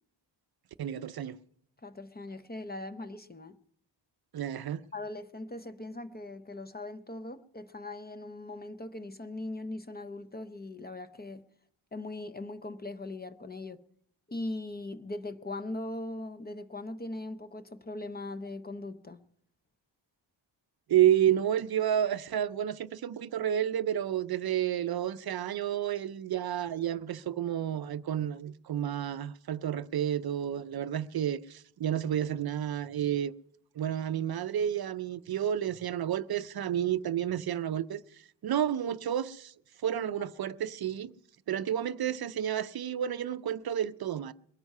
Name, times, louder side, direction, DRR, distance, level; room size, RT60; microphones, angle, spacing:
voice 1, 0.8-1.4 4.3-4.8 20.9-33.3 33.8-39.5 39.8-41.1 41.5-44.3, right 10 dB, 55° right, 0.5 m, -30 dB
voice 2, 1.8-3.6 4.9-11.4 11.9-13.8 14.3-19.2, left 2 dB, 20° left, 0.5 m, -40 dB
22.0 x 9.4 x 5.4 m
wide cardioid pair, 175°, 44 cm